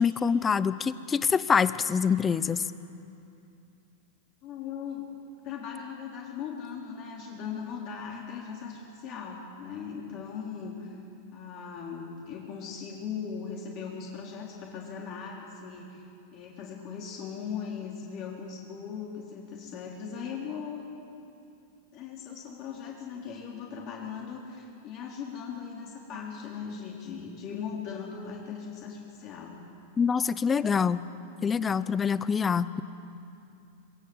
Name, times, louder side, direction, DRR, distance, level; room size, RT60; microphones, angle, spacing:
voice 1, 0.0-2.6 30.0-31.0 31.4-32.8, left 6 dB, 15° left, 15 dB, 0.6 m, -25 dB
voice 2, 4.4-5.1 5.4-11.0 11.3-16.0 16.3-21.0 21.9-29.6, left 6 dB, 35° left, -2 dB, 3.7 m, -39 dB
27.0 x 26.0 x 7.9 m, 2.6 s
supercardioid pair, 165°, 0 cm